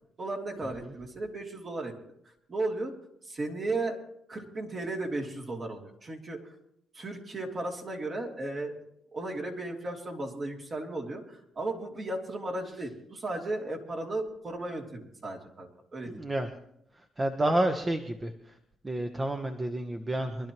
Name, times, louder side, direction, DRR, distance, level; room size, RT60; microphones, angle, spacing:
voice 1, 0.2-1.9 2.5-2.9 3.2-4.0 4.3-6.5 6.9-8.8 9.1-16.2, right 2 dB, 40° right, 0 dB, 2.9 m, -35 dB
voice 2, 16.1-16.5 17.2-18.3 18.8-20.5, right 1 dB, 20° right, 5 dB, 1.1 m, -29 dB
24.5 x 12.0 x 3.1 m, 0.76 s
cardioid pair, 90°, 0 cm